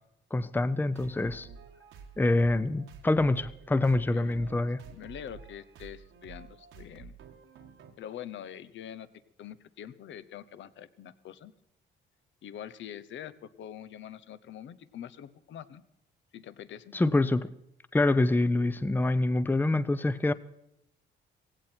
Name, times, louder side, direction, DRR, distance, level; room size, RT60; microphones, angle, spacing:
voice 1, 0.3-1.5 2.2-4.8 16.9-17.5 17.9-20.3, left 2 dB, 10° left, 0.6 m, -26 dB
sound 1, 0.9-7.9, right 6 dB, 85° right, 1.8 m, -50 dB
voice 2, 4.1-7.1 8.0-9.1 9.4-11.5 12.4-15.8 16.3-16.9, left 10 dB, 70° left, 0.9 m, -44 dB
17.5 x 16.5 x 4.5 m
cardioid pair, 90°, 20 cm